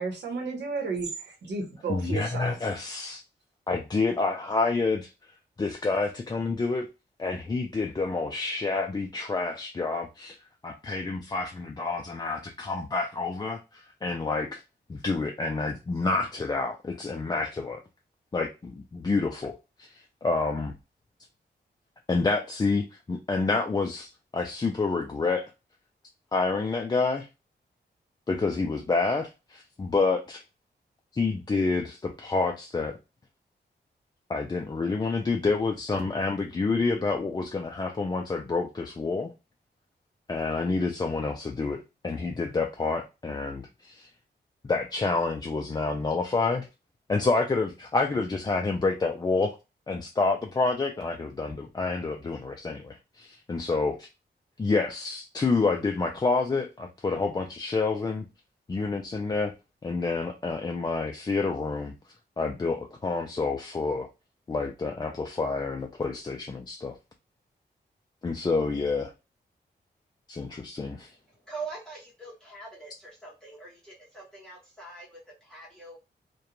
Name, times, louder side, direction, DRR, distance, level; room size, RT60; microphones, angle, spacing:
voice 1, 0.0-2.8, right 4 dB, 75° right, 0.9 m, -33 dB
voice 2, 1.9-3.2 3.7-5.1 5.6-6.9 7.2-10.4 10.6-14.6 14.9-17.8 18.3-19.9 20.2-20.7 22.1-25.5 26.3-27.3 28.3-30.4 31.1-33.0 34.3-39.3 40.3-44.1 44.6-46.7 47.1-49.5 49.9-54.1 54.6-58.3 58.7-59.5 59.8-61.9 62.4-64.1 64.5-67.0 68.2-69.1 70.3-71.1, left 3 dB, 25° left, 0.3 m, -28 dB
voice 3, 71.3-76.0, right 4 dB, 5° left, 0.8 m, -43 dB
2.4 x 2.2 x 2.9 m
wide cardioid pair, 95°, 18 cm